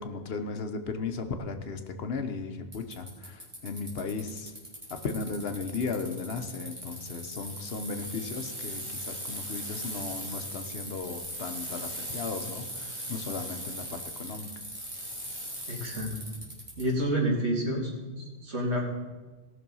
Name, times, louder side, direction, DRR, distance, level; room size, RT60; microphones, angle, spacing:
voice 1, 0.0-4.5 4.9-14.5, left 4 dB, 65° left, 7 dB, 1.1 m, -36 dB
Bicycle, 2.7-16.8, equal, 25° right, 3.2 m, -39 dB
voice 2, 15.7-16.2 16.8-18.9, equal, 85° right, -1 dB, 2.6 m, -29 dB
17.5 x 6.3 x 5.4 m, 1.2 s
omnidirectional pair, 1.1 m